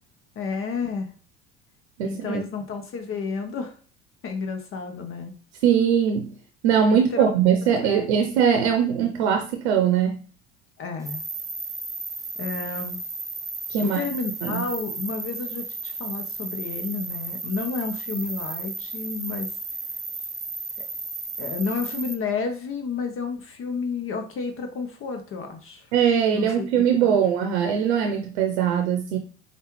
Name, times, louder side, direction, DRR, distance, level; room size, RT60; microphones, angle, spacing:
voice 1, 0.4-1.1 2.0-3.7 4.2-5.3 6.9-7.2 7.8-8.1 10.8-11.2 12.4-13.0 13.8-19.5 20.8-20.9 21.4-25.9 26.3-27.2, left 5 dB, 40° left, 5 dB, 0.8 m, -31 dB
voice 2, 2.0-2.4 5.6-6.3 6.6-10.2 13.7-14.1 14.4-14.6 25.9-29.2, right 8 dB, 80° right, 5 dB, 0.7 m, -21 dB
sound 1, 11.0-22.1, right 3 dB, 10° right, 0.4 m, -34 dB
5.2 x 2.4 x 3.1 m, 0.40 s
hypercardioid pair, 70°, 33 cm